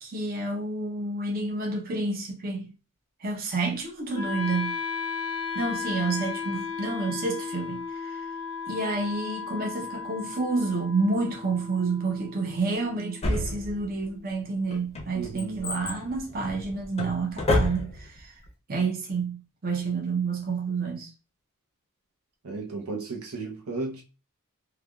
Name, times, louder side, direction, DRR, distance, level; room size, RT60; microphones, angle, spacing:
voice 1, 0.0-2.7 3.2-4.8 5.5-8.3 8.7-18.3 18.7-21.1, right 3 dB, 45° right, 0.7 m, -29 dB
Wind instrument woodwind instrument, 4.1-14.1, left 5 dB, 85° left, 0.7 m, -35 dB
Drawer open or close, 13.2-14.1 14.7-18.2 18.5-18.6, left 1 dB, 30° left, 0.6 m, -29 dB
voice 2, 15.1-15.6 22.4-24.0, right 3 dB, 80° right, 0.7 m, -34 dB
3.3 x 2.2 x 2.3 m
head